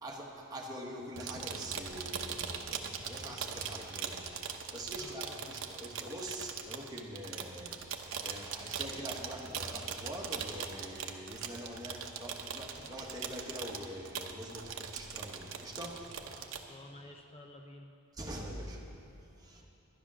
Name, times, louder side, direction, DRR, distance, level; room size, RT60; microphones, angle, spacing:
voice 1, 0.0-4.2 4.5-16.5 18.1-18.8 19.2-19.7, equal, 15° right, -2 dB, 1.4 m, -44 dB
sound 1, 1.1-16.6, right 7 dB, 60° right, 0.8 m, -41 dB
voice 2, 5.0-5.4 16.4-17.9 19.6-19.7, left 1 dB, 25° left, 3 dB, 0.6 m, -52 dB
11.5 x 10.5 x 6.2 m, 2.9 s
head